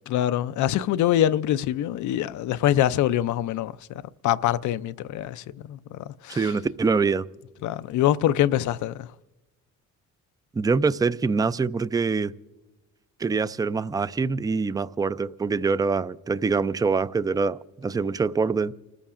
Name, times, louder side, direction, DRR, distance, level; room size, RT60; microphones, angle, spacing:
voice 1, 0.1-6.5 7.6-9.1, left 12 dB, 75° left, 0.5 m, -24 dB
voice 2, 6.3-7.2 10.5-12.3 13.2-18.7, right 4 dB, 15° right, 0.4 m, -24 dB
30.0 x 14.5 x 2.5 m
cardioid pair, 90°, 30 cm